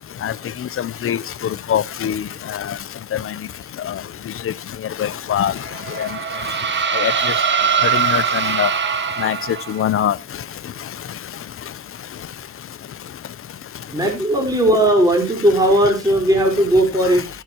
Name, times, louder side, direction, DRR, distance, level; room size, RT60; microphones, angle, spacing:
voice 1, 0.2-2.8 3.1-3.4 3.8-4.0 4.3-4.5 5.0-5.6 5.9-6.1 6.9-7.3 7.8-8.7 9.2-10.2, left 10 dB, 45° left, 0.7 m, -23 dB
sound 1, 5.6-9.9, right 6 dB, 40° right, 1.6 m, -21 dB
voice 2, 13.9-17.3, right 1 dB, 10° right, 4.5 m, -17 dB
14.5 x 9.2 x 3.0 m
cardioid pair, 90°, 30 cm